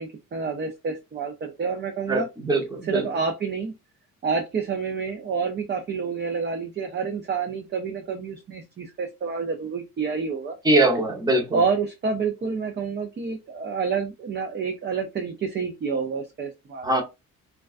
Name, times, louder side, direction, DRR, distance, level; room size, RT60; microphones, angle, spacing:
voice 1, 0.0-2.3 2.8-3.7 4.2-10.6 11.5-16.9, right 5 dB, 30° right, 0.4 m, -28 dB
voice 2, 2.1-3.0 10.6-11.5 16.8-17.0, right 2 dB, 10° right, 0.8 m, -22 dB
2.3 x 2.2 x 2.4 m
cardioid pair, 95°, 36 cm